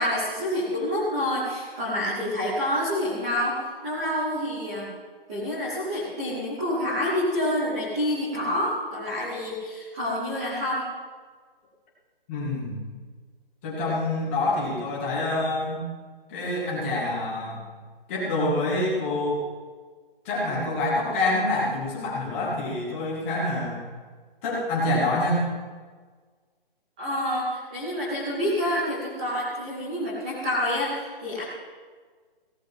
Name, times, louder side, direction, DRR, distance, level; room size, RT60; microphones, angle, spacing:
voice 1, 0.0-4.9 5.3-10.9 27.0-31.4, left 1 dB, 5° right, -8 dB, 0.8 m, -28 dB
voice 2, 12.3-12.8 13.6-15.9 16.3-17.7 18.1-19.4 20.2-23.8 24.4-25.5, left 2 dB, 15° left, -6 dB, 2.2 m, -26 dB
17.0 x 13.0 x 3.7 m, 1.5 s
hypercardioid pair, 180°, 29 cm